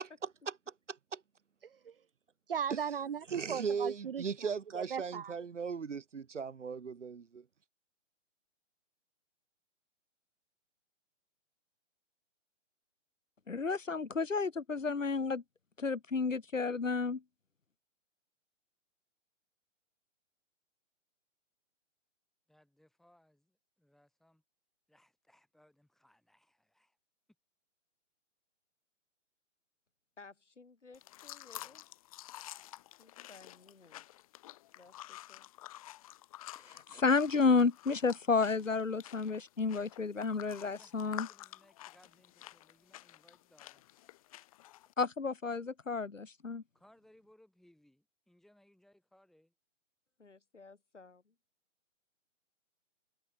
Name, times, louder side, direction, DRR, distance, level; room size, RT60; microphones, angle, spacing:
voice 1, 1.6-1.9 2.5-5.3, right 7 dB, 45° right, 1.0 m, -38 dB
voice 2, 3.3-7.4, right 6 dB, 70° right, 0.9 m, -38 dB
voice 3, 13.5-15.4 15.8-17.2 36.6-41.3 45.0-46.6, left 4 dB, 85° left, 0.9 m, -31 dB
voice 4, 22.5-24.4 24.9-27.0 40.5-43.9 46.7-49.5, left 1 dB, ahead, 6.9 m, -66 dB
voice 5, 30.2-31.8 33.0-34.1 34.8-35.5 50.2-51.4, left 4 dB, 70° left, 7.5 m, -57 dB
sound 1, 30.9-44.9, left 15 dB, 30° left, 1.7 m, -50 dB
figure-of-eight pair, 130°, 37 cm